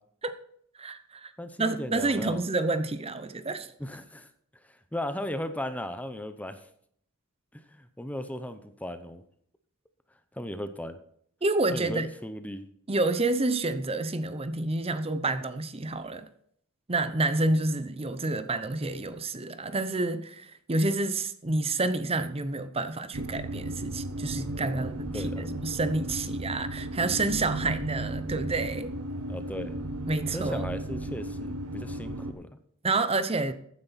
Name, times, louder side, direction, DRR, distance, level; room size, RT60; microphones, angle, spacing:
voice 1, 0.8-1.3 1.6-3.7 11.4-12.1 12.9-16.3 16.9-28.9 30.1-30.7 32.8-33.5, right 2 dB, 25° right, 11 dB, 0.8 m, -29 dB
voice 2, 1.4-2.4 3.8-4.3 4.7-6.7 7.5-9.2 10.3-11.0 11.7-12.7 24.3-25.5 29.3-29.7 30.3-32.5, left 1 dB, 5° left, 10 dB, 0.7 m, -37 dB
sound 1, 23.1-32.3, right 1 dB, 85° right, 1.3 m, -35 dB
15.0 x 9.7 x 4.2 m, 0.65 s
head